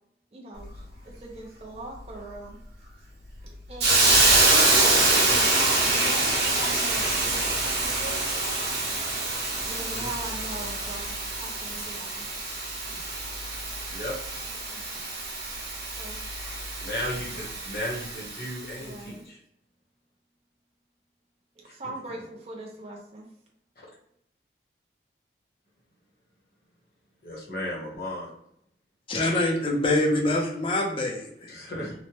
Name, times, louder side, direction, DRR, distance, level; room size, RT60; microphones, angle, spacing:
voice 1, 0.3-0.7 1.0-2.6 3.7-8.3 9.6-12.3 14.5-14.8 16.0-16.2 18.8-19.3 21.6-23.3, right 2 dB, 35° right, -2 dB, 0.5 m, -40 dB
Hiss, 3.8-18.6, right 2 dB, 65° right, 1.0 m, -25 dB
voice 2, 9.6-10.1 13.9-14.1 16.8-19.4 21.6-21.8 27.2-28.3 31.5-31.9, equal, 55° left, -4 dB, 0.9 m, -35 dB
voice 3, 29.1-31.5, left 1 dB, 30° left, 1 dB, 0.4 m, -25 dB
3.1 x 2.1 x 2.8 m, 0.74 s
head